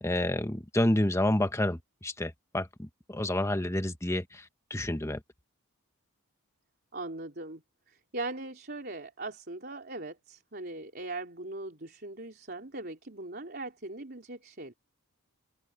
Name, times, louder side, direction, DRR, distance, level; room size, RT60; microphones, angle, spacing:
voice 1, 0.0-4.4 4.7-5.2, left 1 dB, 15° left, 1.1 m, -29 dB
voice 2, 6.9-7.6 7.9-14.7, right 2 dB, 45° right, 3.6 m, -40 dB
open air
head